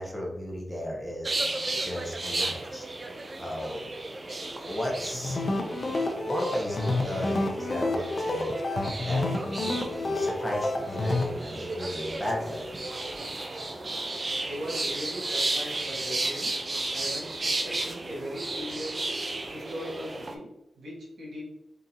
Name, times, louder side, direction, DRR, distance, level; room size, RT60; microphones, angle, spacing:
voice 1, 0.0-1.3 1.8-2.8 3.4-3.9 4.6-5.4 6.3-8.7 9.0-12.7 13.5-13.7, equal, 5° left, -3 dB, 0.9 m, -35 dB
sound 1, 1.2-20.3, right 2 dB, 35° right, 0.4 m, -34 dB
sound 2, 5.1-11.3, left 2 dB, 45° left, 0.5 m, -29 dB
voice 2, 14.4-16.5 16.9-19.1 19.5-20.5 20.8-21.4, equal, 80° right, -4 dB, 1.5 m, -39 dB
3.8 x 3.7 x 2.8 m, 0.89 s
wide cardioid pair, 140°, 0 cm